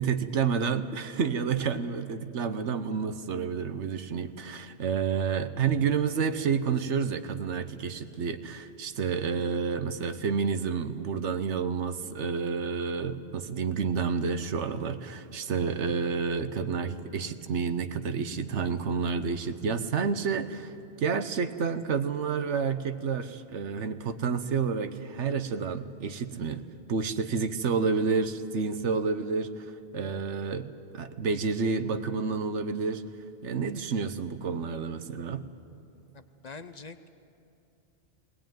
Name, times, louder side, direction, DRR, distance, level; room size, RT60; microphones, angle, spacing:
voice 1, 0.0-20.7 21.0-26.6 26.9-33.0 33.4-35.4, right 5 dB, 90° right, 10 dB, 1.2 m, -29 dB
voice 2, 36.1-37.1, left 4 dB, 45° left, 10 dB, 0.7 m, -44 dB
19.5 x 19.0 x 9.2 m, 2.8 s
omnidirectional pair, 1.2 m